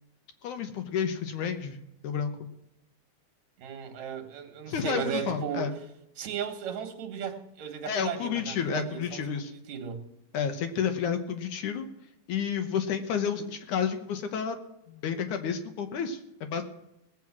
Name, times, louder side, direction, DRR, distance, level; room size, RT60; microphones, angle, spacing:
voice 1, 0.4-2.5 4.7-5.7 7.9-9.5 10.3-11.9 12.3-14.6 14.9-16.6, left 7 dB, 70° left, 7 dB, 2.3 m, -31 dB
voice 2, 3.6-5.7 6.2-10.1, right 8 dB, 60° right, 6 dB, 2.5 m, -36 dB
19.0 x 7.9 x 6.0 m, 0.86 s
omnidirectional pair, 4.1 m